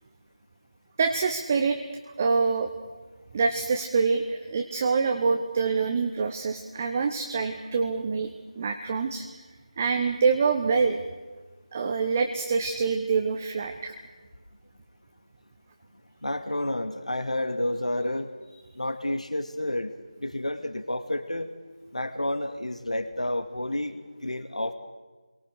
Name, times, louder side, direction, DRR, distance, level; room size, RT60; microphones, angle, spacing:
voice 1, 1.0-1.8 2.2-2.7 3.3-8.3 8.6-9.2 9.8-11.0 11.7-13.9, right 5 dB, 20° right, 5 dB, 1.1 m, -25 dB
voice 2, 16.2-18.3 18.8-19.9 20.2-21.5 21.9-24.7, left 1 dB, 80° left, 9 dB, 2.4 m, -30 dB
27.5 x 23.0 x 6.5 m, 1.3 s
figure-of-eight pair, 165°, 4 cm